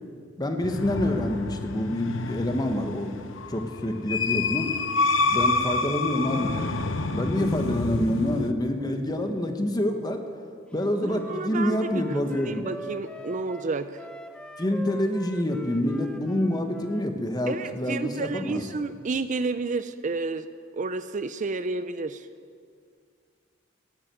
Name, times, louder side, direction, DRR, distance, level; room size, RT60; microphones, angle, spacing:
voice 1, 0.4-3.1 3.5-4.7 5.3-6.7 7.1-10.2 10.7-12.7 14.6-18.6, left 1 dB, 20° left, 5 dB, 1.3 m, -27 dB
sound 1, 0.6-8.5, left 3 dB, 90° left, 0.9 m, -28 dB
Wind instrument woodwind instrument, 10.7-17.1, equal, 5° left, 0.9 m, -42 dB
voice 2, 11.0-14.0 17.5-20.5 20.7-22.3, right 3 dB, 40° right, 11 dB, 0.5 m, -31 dB
15.0 x 10.0 x 9.1 m, 2.2 s
head